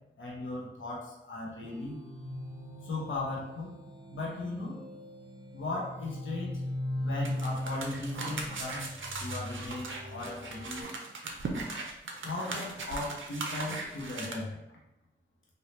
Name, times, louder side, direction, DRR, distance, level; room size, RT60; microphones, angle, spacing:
voice 1, 0.2-2.0 2.8-3.7 4.1-4.8 5.5-6.6 7.0-10.9 12.2-14.6, left 2 dB, 80° left, -4 dB, 1.0 m, -37 dB
sound 1, 1.6-10.8, left 1 dB, 15° right, 1.1 m, -40 dB
sound 2, 7.2-14.3, right 3 dB, 80° right, 0.5 m, -39 dB
3.3 x 2.8 x 2.8 m, 0.91 s
cardioid pair, 40°, 20 cm